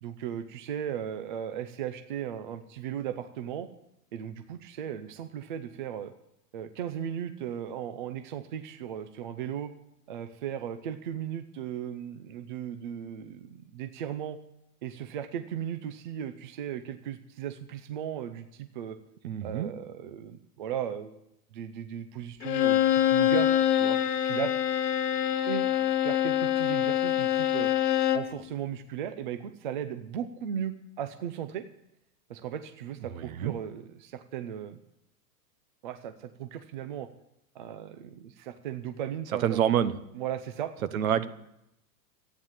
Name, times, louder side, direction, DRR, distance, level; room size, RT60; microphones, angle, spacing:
voice 1, 0.0-3.7 4.1-6.1 6.5-9.7 10.1-14.4 14.8-19.0 19.4-21.2 21.5-23.5 23.8-24.0 24.2-24.5 25.5-25.7 26.0-27.7 28.1-31.6 32.3-34.8 35.8-37.1 37.5-39.6 40.2-40.7, right 9 dB, 35° right, 9 dB, 0.5 m, -36 dB
voice 2, 19.2-19.7 33.1-33.5 39.4-40.0 40.9-41.3, right 9 dB, 60° right, 13 dB, 1.1 m, -27 dB
Bowed string instrument, 22.4-28.3, left 11 dB, 80° left, 1.5 m, -25 dB
14.0 x 9.5 x 7.3 m, 0.80 s
supercardioid pair, 180°, 47 cm